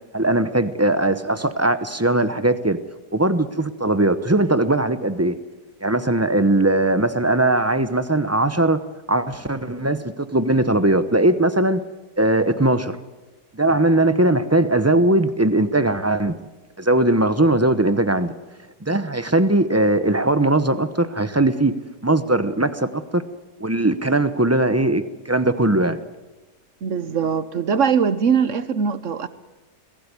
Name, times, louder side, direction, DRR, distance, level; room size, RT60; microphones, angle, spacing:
voice 1, 0.1-2.8 3.1-5.4 5.8-8.8 9.1-11.8 12.2-13.0 13.5-16.3 16.8-18.3 18.8-21.7 22.0-23.2 23.6-26.0, right 2 dB, 15° right, 0.5 m, -19 dB
voice 2, 26.8-29.3, right 6 dB, 55° right, 1.1 m, -21 dB
22.0 x 16.5 x 9.9 m
omnidirectional pair, 1.8 m